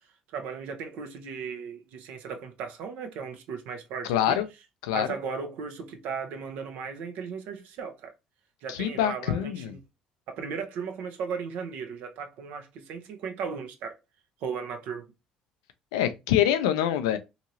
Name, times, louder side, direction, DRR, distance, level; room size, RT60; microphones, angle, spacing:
voice 1, 0.3-4.4 4.9-8.1 8.6-9.8 10.3-14.0 14.4-15.1, right 6 dB, 70° right, 0.6 m, -36 dB
voice 2, 4.1-4.5 4.8-5.1 8.7-9.7 15.9-17.2, left 11 dB, 80° left, 0.4 m, -25 dB
2.8 x 2.7 x 2.8 m
hypercardioid pair, 60°, 3 cm